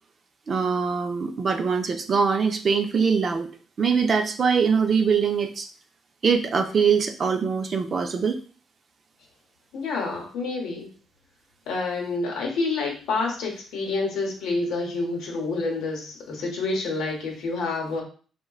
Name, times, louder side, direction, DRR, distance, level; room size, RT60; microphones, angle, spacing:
voice 1, 0.5-3.5 3.8-5.7 6.2-8.4, right 5 dB, 45° right, 6 dB, 0.4 m, -23 dB
voice 2, 9.7-10.9 11.7-18.0, left 3 dB, 90° left, 0 dB, 0.8 m, -28 dB
3.7 x 2.1 x 2.3 m, 0.40 s
cardioid pair, 90°, 0 cm